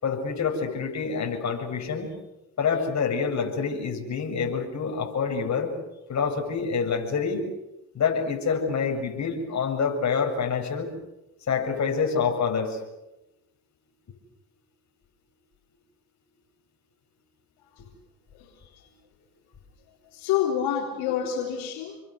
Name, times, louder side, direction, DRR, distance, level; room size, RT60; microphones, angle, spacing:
voice 1, 0.0-2.1 2.6-5.7 6.1-7.4 7.9-10.9 11.5-12.8 21.1-21.2, left 5 dB, 45° left, 7.7 m, -27 dB
voice 2, 20.1-22.0, left 9 dB, 85° left, 3.9 m, -27 dB
29.0 x 23.5 x 8.2 m
supercardioid pair, 85°, 37 cm